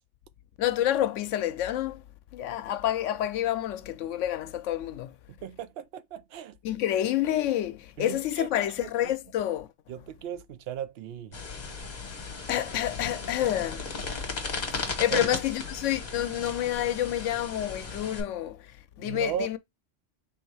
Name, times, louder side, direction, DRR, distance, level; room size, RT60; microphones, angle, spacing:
voice 1, 0.6-2.0 2.3-5.1 6.6-9.7 12.5-13.8 14.8-18.6 19.0-19.6, left 12 dB, 85° left, 0.9 m, -28 dB
voice 2, 5.4-6.6 8.0-8.5 8.8-9.1 9.9-11.4 15.1-15.3 19.0-19.6, right 9 dB, 65° right, 0.7 m, -36 dB
sound 1, 11.3-18.2, left 4 dB, 35° left, 1.1 m, -36 dB
3.7 x 2.7 x 4.6 m
omnidirectional pair, 1.2 m